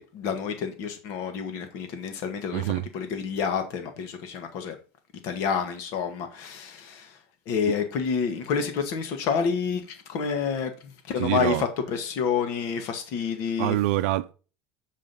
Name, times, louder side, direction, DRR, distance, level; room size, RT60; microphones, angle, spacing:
voice 1, 0.0-4.8 5.2-7.2 7.5-10.7 11.1-13.8, left 6 dB, 50° left, 1.4 m, -29 dB
voice 2, 2.5-2.9 11.2-11.6 13.6-14.3, right 16 dB, 85° right, 0.5 m, -25 dB
7.3 x 4.9 x 5.4 m
cardioid pair, 165°, 6 cm